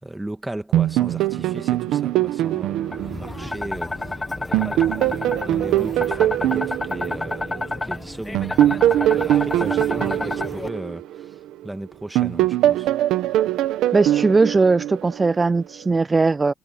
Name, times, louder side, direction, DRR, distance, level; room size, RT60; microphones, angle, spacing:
voice 1, 0.0-12.9, right 1 dB, 10° right, 2.1 m, -36 dB
sound 1, 0.7-4.1 4.5-7.8 8.3-11.7 12.1-15.4, right 13 dB, 90° right, 1.4 m, -22 dB
sound 2, 2.9-10.7, left 2 dB, 20° left, 1.8 m, -30 dB
voice 2, 13.9-16.5, right 3 dB, 25° right, 0.4 m, -19 dB
cardioid pair, 90°, 0 cm